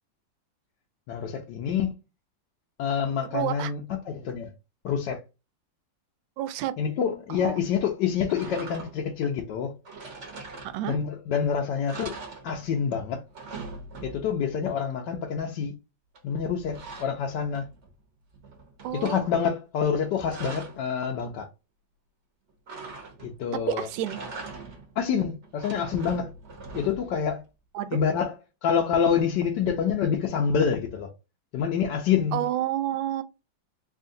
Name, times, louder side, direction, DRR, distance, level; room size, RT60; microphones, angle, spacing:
voice 1, 1.1-1.9 2.8-4.5 4.8-5.2 6.8-9.7 10.9-12.2 12.4-13.2 14.0-15.7 16.2-17.7 18.9-21.5 23.2-23.9 25.0-26.3 26.7-27.4 27.9-28.3 28.6-31.1 31.5-32.4, left 7 dB, 70° left, 1.3 m, -27 dB
voice 2, 3.3-3.7 6.4-6.7 7.3-7.6 10.6-11.0 18.8-19.2 23.7-24.2 27.7-28.0 32.3-33.2, right 12 dB, 85° right, 1.3 m, -29 dB
sound 1, 8.3-9.2 9.8-11.1 11.5-11.6 11.9-12.9 13.2-14.4 16.1-17.9 18.3-19.2 19.9-20.9 22.7-23.5 23.9-25.0 25.4-27.2, right 4 dB, 45° right, 1.2 m, -42 dB
3.6 x 2.5 x 3.7 m
omnidirectional pair, 2.0 m